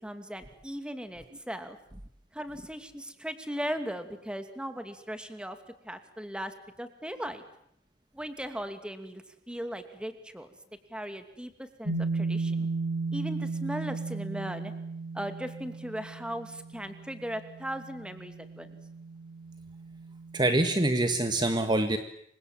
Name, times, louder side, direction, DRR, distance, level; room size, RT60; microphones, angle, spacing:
voice 1, 0.0-1.8 2.3-5.6 5.8-7.4 8.1-10.5 10.9-12.7 13.1-14.7 15.1-18.7, equal, 5° right, 8 dB, 2.7 m, -38 dB
sound 1, 11.8-21.3, right 3 dB, 70° right, 7.0 m, -36 dB
voice 2, 20.3-22.0, right 2 dB, 25° right, 8 dB, 1.7 m, -25 dB
29.5 x 25.5 x 7.6 m, 0.72 s
head